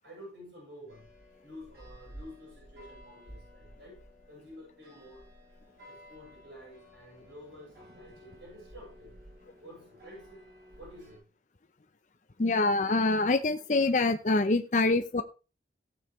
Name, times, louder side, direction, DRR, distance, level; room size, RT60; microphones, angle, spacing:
voice 1, 0.0-1.1 1.4-5.2 5.8-9.1 9.6-10.4 10.8-11.3, equal, 85° right, -4 dB, 7.8 m, -50 dB
sound 1, 0.9-11.2, equal, 60° right, 7.7 m, -53 dB
voice 2, 12.4-15.2, left 3 dB, 45° left, 7 dB, 0.6 m, -25 dB
17.5 x 7.1 x 3.2 m, 0.33 s
head